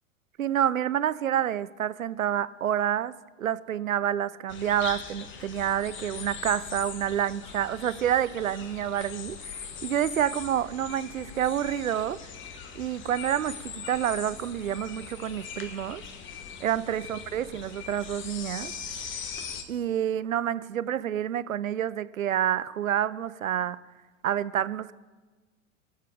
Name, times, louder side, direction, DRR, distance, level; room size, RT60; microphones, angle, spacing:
voice 1, 0.4-12.2 12.7-16.0 16.6-18.7 19.7-23.8 24.2-24.9, right 10 dB, 80° right, 18 dB, 0.6 m, -28 dB
sound 1, 4.5-19.6, left 6 dB, 30° left, 1.3 m, -41 dB
21.0 x 7.4 x 5.0 m, 1.3 s
figure-of-eight pair, 95°, 40 cm